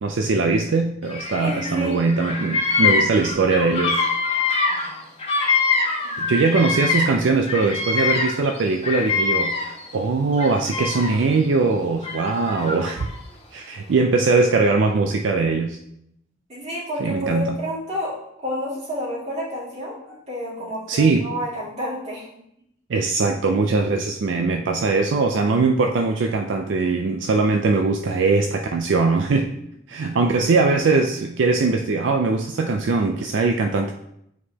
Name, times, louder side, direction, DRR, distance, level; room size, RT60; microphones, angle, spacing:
voice 1, 0.0-4.0 6.2-13.1 13.5-15.8 17.0-17.5 20.9-21.3 22.9-29.5 29.9-33.9, right 3 dB, 75° right, 4 dB, 0.4 m, -21 dB
Bird vocalization bird call bird song, 1.1-1.8 2.1-7.2 7.5-9.9 10.3-11.3 12.0-13.1, left 4 dB, 35° left, 1.2 m, -24 dB
voice 2, 1.4-2.0 4.6-5.0 6.0-6.1 16.5-18.1 18.4-22.4, equal, 40° right, -6 dB, 2.4 m, -30 dB
8.2 x 4.7 x 2.9 m, 0.76 s
head